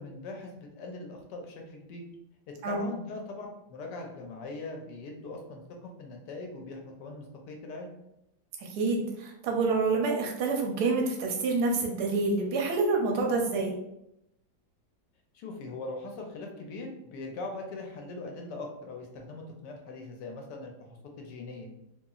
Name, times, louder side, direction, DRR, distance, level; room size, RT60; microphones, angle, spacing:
voice 1, 0.0-2.0 2.5-7.9 15.3-21.7, left 3 dB, 75° left, 2 dB, 1.1 m, -41 dB
voice 2, 8.6-13.7, right 3 dB, 70° right, 0 dB, 1.0 m, -27 dB
2.9 x 2.6 x 2.3 m, 0.85 s
omnidirectional pair, 2.1 m